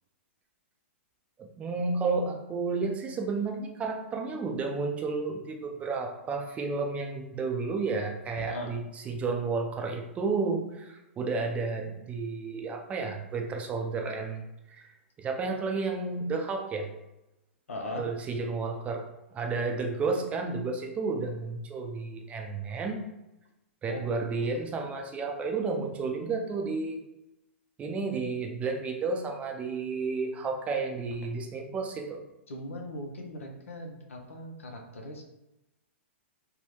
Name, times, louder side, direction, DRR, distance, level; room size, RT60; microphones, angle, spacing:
voice 1, 1.4-14.9 15.2-16.9 18.0-23.0 23.8-27.0 27.8-32.2, right 4 dB, 20° right, 2 dB, 0.5 m, -32 dB
voice 2, 8.4-8.7 17.7-18.1 23.9-24.0 24.4-24.5 32.5-35.2, left 1 dB, 85° left, 1 dB, 0.6 m, -39 dB
3.4 x 2.1 x 3.0 m, 0.93 s
hypercardioid pair, 125°, 7 cm